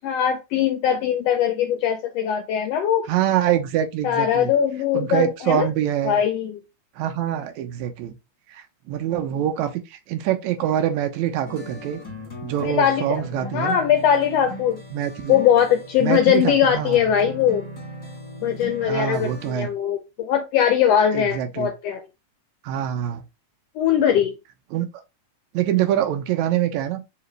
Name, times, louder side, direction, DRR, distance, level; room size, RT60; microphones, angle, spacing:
voice 1, 0.0-3.1 4.0-5.7 6.0-6.6 12.6-13.3 13.5-14.8 15.3-17.7 18.4-22.0 23.7-24.3, left 9 dB, 80° left, 1.5 m, -21 dB
voice 2, 3.1-4.5 4.9-6.2 7.0-8.2 8.5-12.0 12.4-13.8 14.9-15.4 16.0-17.0 18.8-19.7 21.1-21.7 22.6-23.2 24.7-24.9 25.5-27.0, right 11 dB, 80° right, 1.9 m, -24 dB
sound 1, 11.4-19.5, left 1 dB, 15° left, 0.9 m, -39 dB
4.7 x 2.9 x 3.2 m
omnidirectional pair, 3.4 m